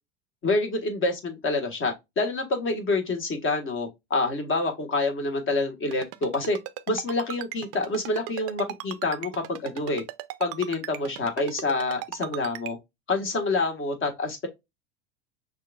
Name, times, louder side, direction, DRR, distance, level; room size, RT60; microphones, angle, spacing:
voice 1, 0.4-6.6 6.9-10.0 10.4-12.8 13.1-14.5, left 3 dB, 35° left, 1.5 m, -27 dB
Ringtone, 5.9-12.7, right 16 dB, 40° right, 0.5 m, -36 dB
6.1 x 2.6 x 2.3 m
hypercardioid pair, 85°, 35 cm